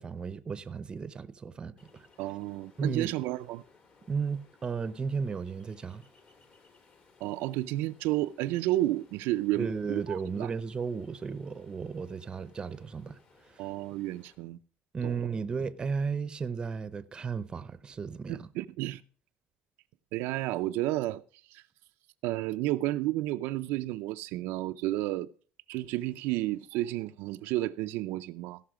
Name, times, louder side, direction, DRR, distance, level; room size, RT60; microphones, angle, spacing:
voice 1, 0.0-1.7 2.8-3.1 4.1-6.0 9.6-13.2 14.9-18.5, right 5 dB, 25° right, 0.6 m, -34 dB
Ocean, 1.8-14.3, left 4 dB, 40° left, 2.0 m, -62 dB
voice 2, 2.2-3.6 7.2-10.5 13.6-14.6 15.0-15.2 18.3-19.0 20.1-21.2 21.5-21.6 22.2-25.3 25.7-28.6, right 16 dB, 80° right, 0.4 m, -31 dB
16.5 x 5.8 x 4.8 m
cardioid pair, 135°, 4 cm